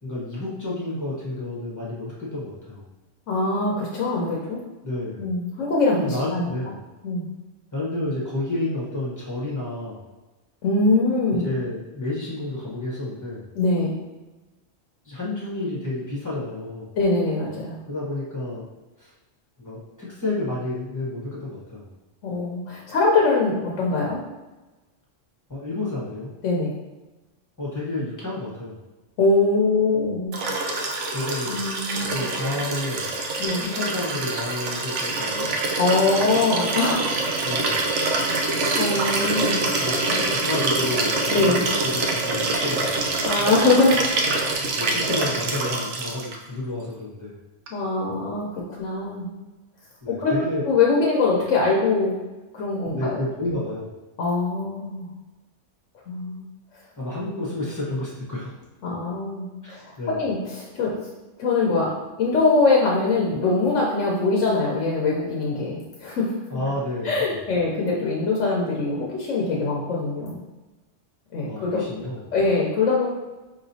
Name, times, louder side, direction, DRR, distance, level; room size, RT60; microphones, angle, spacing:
voice 1, 0.0-2.9 4.8-5.3 5.9-6.8 7.7-10.0 11.4-13.5 15.0-16.9 17.9-18.6 19.0-19.1 19.6-21.9 25.5-26.3 27.6-28.8 31.1-31.6 32.1-33.1 33.6-35.6 37.4-37.9 39.8-43.2 44.7-47.3 50.0-50.6 52.9-53.9 57.0-58.5 59.6-60.2 66.5-67.4 71.4-72.3, left 2 dB, 15° left, -6 dB, 1.1 m, -30 dB
voice 2, 3.3-4.6 5.2-6.5 7.0-7.3 10.6-11.4 13.5-14.0 17.0-17.8 22.2-24.3 26.4-26.7 29.2-30.4 30.7-31.0 31.4-32.2 33.4-33.6 35.8-37.1 38.2-38.5 38.8-39.7 41.3-41.6 43.2-44.0 44.3-44.5 47.7-49.3 50.1-50.3 50.7-52.1 52.5-53.2 54.2-55.1 56.1-56.4 58.8-60.9 61.4-61.9 62.2-66.3 67.0-70.4 71.3-71.8 72.3-73.1, left 3 dB, 85° left, -2 dB, 1.1 m, -23 dB
Liquid, 30.3-46.4 47.7-47.8, right 3 dB, 75° right, 0.9 m, -25 dB
5.2 x 2.9 x 2.7 m, 1.1 s
omnidirectional pair, 1.3 m